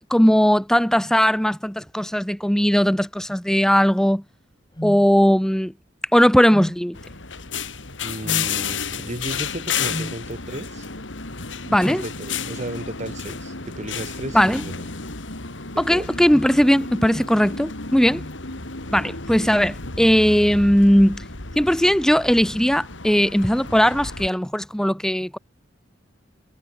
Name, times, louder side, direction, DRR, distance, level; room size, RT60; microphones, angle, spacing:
voice 1, 0.1-4.2 4.8-5.7 6.1-7.0 11.7-12.0 14.3-14.6 15.8-18.2 18.9-21.2 21.6-25.4, equal, 5° left, 1.0 m, -18 dB
sound 1, 4.8-5.0 6.5-6.8 8.2-8.5 9.9-10.2, equal, 20° left, 3.6 m, -31 dB
sound 2, 6.9-24.3, left 5 dB, 90° left, 3.3 m, -32 dB
voice 2, 8.0-10.9 11.8-14.7 15.7-16.1, right 1 dB, 40° right, 3.4 m, -34 dB
head